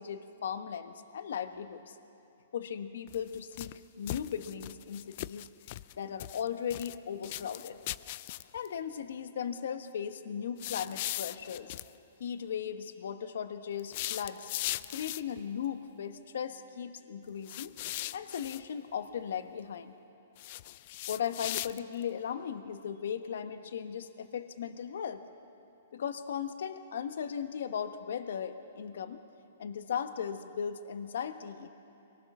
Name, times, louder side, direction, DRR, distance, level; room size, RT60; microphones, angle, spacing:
voice 1, 0.0-2.0 2.5-5.5 6.0-7.8 8.5-11.8 12.2-14.5 14.9-17.7 18.1-19.9 21.1-25.2 25.9-29.2 29.6-31.7, left 8 dB, 70° left, 9 dB, 1.1 m, -37 dB
sound 1, 3.1-3.8 4.1-5.9 6.2-7.0 7.2-8.7 10.6-11.9 13.8-15.4 17.5-18.6 20.4-22.0, left 16 dB, 45° left, 0.4 m, -39 dB
24.0 x 19.5 x 6.1 m, 2.8 s
hypercardioid pair, 150°, 0 cm